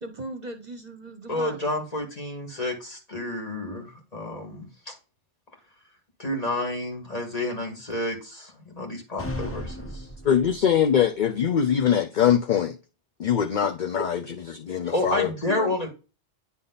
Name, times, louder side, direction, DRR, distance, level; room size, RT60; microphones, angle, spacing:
voice 1, 0.0-1.6 14.0-14.1 15.4-15.9, right 2 dB, 40° right, 0.9 m, -36 dB
voice 2, 1.3-4.9 6.2-10.1 14.8-15.9, left 2 dB, 35° left, 2.1 m, -30 dB
sound 1, 9.2-10.8, left 1 dB, 15° left, 0.7 m, -35 dB
voice 3, 10.2-12.8 13.2-14.2 14.7-15.3, left 8 dB, 50° left, 0.6 m, -22 dB
9.7 x 3.6 x 3.9 m
omnidirectional pair, 1.1 m